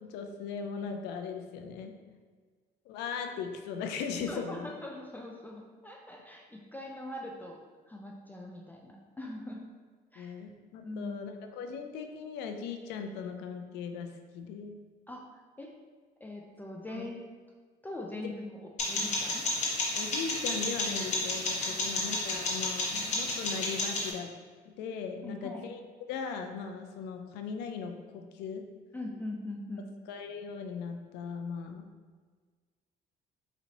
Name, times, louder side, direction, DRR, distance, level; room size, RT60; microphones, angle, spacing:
voice 1, 0.0-1.9 2.9-4.7 10.2-14.8 16.9-17.1 18.2-18.3 20.0-24.3 24.7-25.8 26.1-28.6 30.1-31.9, left 5 dB, 90° left, 6 dB, 0.4 m, -38 dB
voice 2, 4.3-7.6 7.9-9.6 10.1-10.4 10.8-11.4 15.1-15.7 16.2-17.2 17.8-19.4 21.7-22.0 25.2-25.6 28.9-29.9, left 1 dB, 10° left, -1 dB, 0.3 m, -42 dB
sound 1, 18.8-24.1, left 2 dB, 45° left, 1.1 m, -32 dB
4.1 x 2.6 x 2.9 m, 1.5 s
cardioid pair, 110°, 17 cm